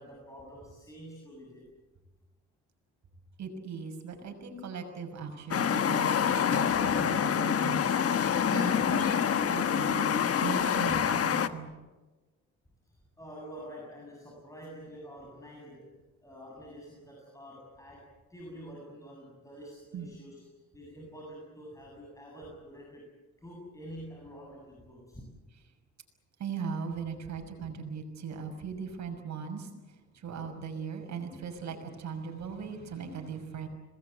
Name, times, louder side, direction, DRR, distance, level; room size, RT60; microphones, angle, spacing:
voice 1, 0.0-1.7 6.7-7.1 10.9-11.0 12.9-15.9 16.2-23.1 23.4-25.2, equal, 10° left, -2 dB, 7.7 m, -47 dB
voice 2, 3.4-7.8 8.1-11.7 19.9-20.1 26.4-33.7, right 6 dB, 65° right, 5 dB, 6.1 m, -39 dB
sound 1, 5.5-11.5, left 8 dB, 50° left, 1.3 m, -26 dB
27.0 x 20.5 x 8.2 m, 1.2 s
cardioid pair, 90°, 30 cm